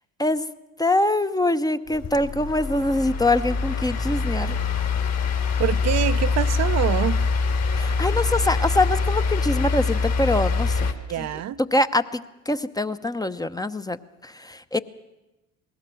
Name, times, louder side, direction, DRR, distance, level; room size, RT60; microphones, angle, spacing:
voice 1, 0.8-4.6 7.8-10.9 11.2-11.3 11.6-14.8, left 2 dB, 10° left, 0.9 m, -24 dB
sound 1, 1.9-10.9, left 4 dB, 50° left, 2.8 m, -24 dB
voice 2, 5.6-7.3 11.0-11.6, right 11 dB, 50° right, 0.7 m, -25 dB
20.0 x 17.5 x 7.7 m
hypercardioid pair, 65°, 34 cm